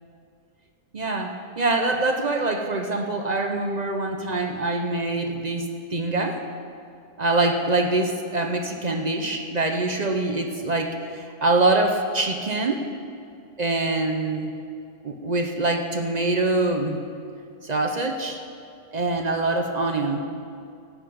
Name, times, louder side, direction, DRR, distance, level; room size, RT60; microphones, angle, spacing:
voice 1, 0.9-5.7 5.9-6.4 7.2-12.9 13.6-14.6 15.0-17.1 17.6-18.4 18.9-20.2, right 2 dB, 65° right, 4 dB, 0.4 m, -24 dB
16.0 x 5.8 x 8.5 m, 2.5 s
omnidirectional pair, 1.9 m